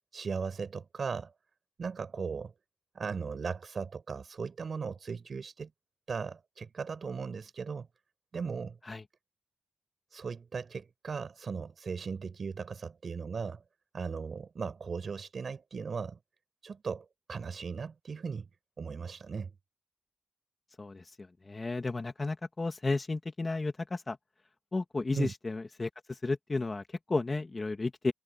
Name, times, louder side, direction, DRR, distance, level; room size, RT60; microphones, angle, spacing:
voice 1, 0.1-1.3 1.8-2.5 2.9-5.7 6.1-7.9 8.3-8.8 10.1-13.6 13.9-16.2 16.6-18.5 18.8-19.5 25.1-25.3, right 5 dB, 60° right, 5.2 m, -37 dB
voice 2, 20.8-24.2 24.7-28.1, left 3 dB, 35° left, 2.3 m, -33 dB
cardioid pair, 60°, 0 cm